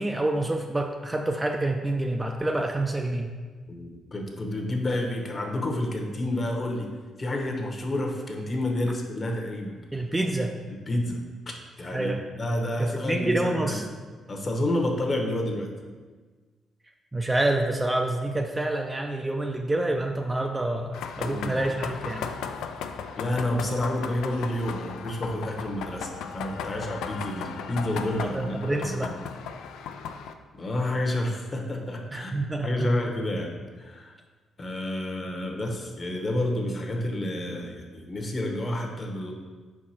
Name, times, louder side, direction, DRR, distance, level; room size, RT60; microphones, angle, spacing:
voice 1, 0.0-3.3 9.9-10.6 11.9-12.3 12.8-13.8 17.1-22.3 28.2-29.2 32.1-32.9, right 2 dB, 15° right, 3 dB, 0.4 m, -27 dB
voice 2, 3.7-6.9 7.2-9.8 10.7-11.2 11.8-13.8 14.3-15.7 21.2-21.6 23.2-29.1 30.6-32.4 32.6-34.1 34.6-39.3, left 1 dB, 35° left, 2 dB, 1.0 m, -29 dB
sound 1, 20.9-30.3, left 6 dB, 85° left, 0.4 m, -36 dB
5.2 x 4.7 x 4.3 m, 1.4 s
cardioid pair, 90°, 0 cm